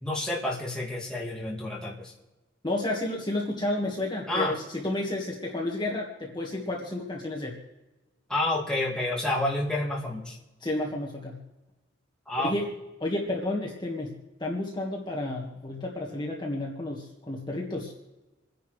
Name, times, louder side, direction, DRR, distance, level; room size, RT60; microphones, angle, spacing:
voice 1, 0.0-2.1 4.3-4.6 8.3-10.4 12.3-12.5, left 1 dB, 5° left, -5 dB, 2.4 m, -29 dB
voice 2, 2.6-4.5 4.8-7.6 10.6-11.4 12.4-12.7 13.0-17.9, left 1 dB, 25° left, -2 dB, 1.7 m, -31 dB
28.0 x 10.5 x 3.3 m, 1.1 s
head